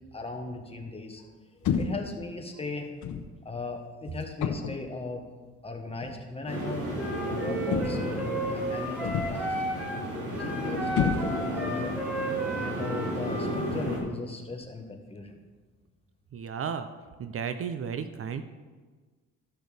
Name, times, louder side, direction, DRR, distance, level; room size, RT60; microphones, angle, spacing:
voice 1, 0.1-1.3 1.8-2.9 3.4-5.2 5.6-6.9 7.3-11.9 12.6-15.4, left 3 dB, 20° left, 3 dB, 1.4 m, -38 dB
sound 1, 1.6-2.1 3.0-3.3 4.4-4.9 6.0-6.2 7.7-8.2 9.0-9.5 10.9-11.6, left 7 dB, 75° left, 0.9 m, -30 dB
sound 2, 6.5-14.0, equal, 90° right, 3.2 m, -33 dB
Wind instrument woodwind instrument, 6.9-10.0 10.3-13.7, right 1 dB, 5° right, 1.9 m, -34 dB
voice 2, 16.3-16.9 17.2-18.4, right 7 dB, 50° right, 10 dB, 0.6 m, -33 dB
14.0 x 6.2 x 3.4 m, 1.4 s
cardioid pair, 90°, 30 cm